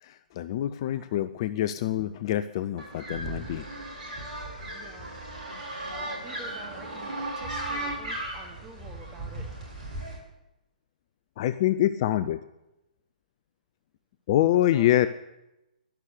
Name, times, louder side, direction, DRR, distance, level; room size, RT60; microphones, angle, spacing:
voice 1, 0.0-3.6 11.4-12.4 14.3-15.1, left 13 dB, 35° left, 13 dB, 0.6 m, -25 dB
voice 2, 0.9-1.2 3.1-3.5 4.7-5.1 6.0-9.5 14.5-15.0, right 4 dB, 15° right, 2 dB, 2.7 m, -49 dB
sound 1, 2.8-10.2, right 1 dB, 45° right, 7.5 m, -36 dB
12.0 x 11.5 x 9.6 m, 0.92 s
figure-of-eight pair, 130°, 5 cm